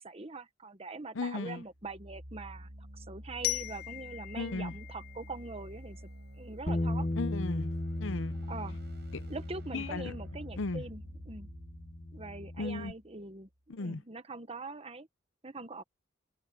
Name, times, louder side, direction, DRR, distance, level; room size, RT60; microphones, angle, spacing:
voice 1, 0.0-6.0 6.4-7.1 8.5-8.8 9.3-11.5 12.1-13.5 13.8-15.1 15.4-15.8, right 3 dB, 30° right, 1.3 m, -43 dB
voice 2, 1.2-1.6 4.4-4.7 7.2-7.7 8.0-8.3 9.1-9.2 9.7-10.1 10.6-10.8 12.6-12.9 13.7-14.0, left 3 dB, 75° left, 0.7 m, -35 dB
sound 1, 1.7-13.4, equal, 55° right, 6.5 m, -49 dB
Glockenspiel, 3.4-6.3, left 18 dB, 50° left, 0.4 m, -39 dB
Bass guitar, 6.7-12.9, left 1 dB, 35° left, 1.2 m, -37 dB
head